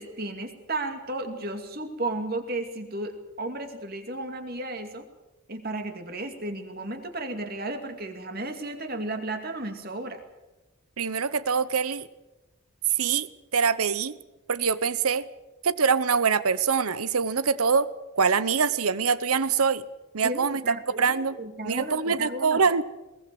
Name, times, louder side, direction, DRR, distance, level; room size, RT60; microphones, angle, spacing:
voice 1, 0.0-5.1 5.5-10.2 20.2-22.6, right 2 dB, 45° right, 6 dB, 2.4 m, -34 dB
voice 2, 11.0-12.1 13.0-14.2 14.5-15.2 15.6-17.9 18.2-19.8 20.1-21.4 21.6-22.8, right 5 dB, 85° right, 17 dB, 0.9 m, -24 dB
21.5 x 18.0 x 7.8 m, 1.1 s
head